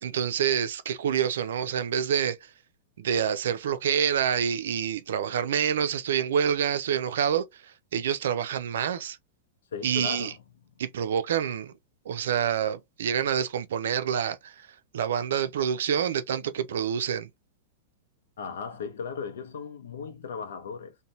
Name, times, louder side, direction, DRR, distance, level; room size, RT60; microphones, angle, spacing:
voice 1, 0.0-2.5 3.0-9.2 9.8-10.3 10.8-11.7 12.1-14.7 14.9-17.3, right 8 dB, 80° right, 0.5 m, -27 dB
voice 2, 9.7-10.4 18.4-21.0, left 6 dB, 85° left, 0.7 m, -36 dB
2.7 x 2.2 x 3.0 m
hypercardioid pair, 140°, 0 cm